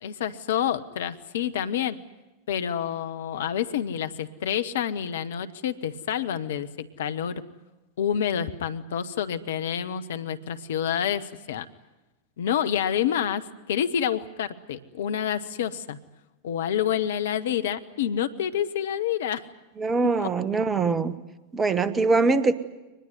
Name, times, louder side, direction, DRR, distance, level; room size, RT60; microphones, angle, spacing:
voice 1, 0.0-2.0 2.5-7.4 8.0-11.7 12.4-16.0 16.4-19.5 20.2-20.3, left 9 dB, 60° left, 11 dB, 1.1 m, -28 dB
voice 2, 19.8-21.1 21.5-22.6, right 4 dB, 20° right, 14 dB, 1.4 m, -23 dB
24.0 x 20.5 x 9.5 m, 1.1 s
figure-of-eight pair, 90°, 0 cm